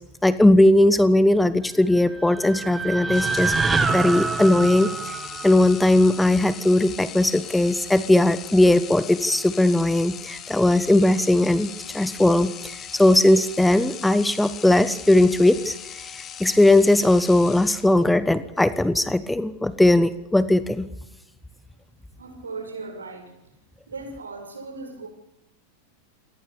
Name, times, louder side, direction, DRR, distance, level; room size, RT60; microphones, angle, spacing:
voice 1, 0.2-5.2 5.4-20.9, left 1 dB, 5° left, 15 dB, 1.1 m, -19 dB
sound 1, 1.9-6.2, right 4 dB, 15° right, 2.2 m, -26 dB
sound 2, 3.1-18.2, left 9 dB, 30° left, 2.8 m, -39 dB
voice 2, 22.1-23.5 23.9-25.1, right 3 dB, 75° right, 7 dB, 6.5 m, -37 dB
28.5 x 22.5 x 6.9 m, 0.84 s
figure-of-eight pair, 90°, 0 cm